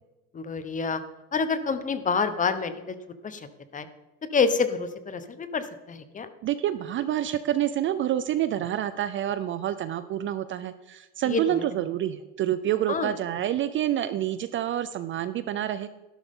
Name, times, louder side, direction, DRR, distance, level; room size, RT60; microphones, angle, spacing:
voice 1, 0.3-1.0 1.3-3.0 3.2-3.5 3.7-3.9 4.3-6.3 11.3-11.6 12.9-13.1, left 5 dB, 20° left, 11 dB, 1.0 m, -27 dB
voice 2, 6.4-15.9, right 12 dB, 35° right, 12 dB, 0.5 m, -28 dB
12.0 x 12.0 x 3.7 m, 1.1 s
supercardioid pair, 120°, 37 cm